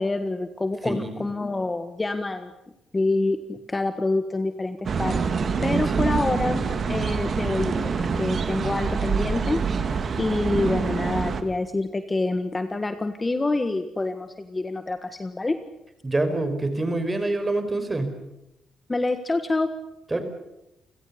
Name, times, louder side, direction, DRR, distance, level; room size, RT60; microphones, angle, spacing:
voice 1, 0.0-2.5 2.9-5.2 5.6-6.6 6.9-9.6 10.2-15.6 18.9-19.7, left 2 dB, 20° left, 9 dB, 1.5 m, -26 dB
voice 2, 0.8-1.2 16.0-18.1 20.1-20.2, right 2 dB, 20° right, 9 dB, 4.9 m, -26 dB
sound 1, 4.8-11.4, right 5 dB, 45° right, 2.4 m, -26 dB
29.5 x 16.5 x 8.4 m, 0.88 s
cardioid pair, 90°, 0 cm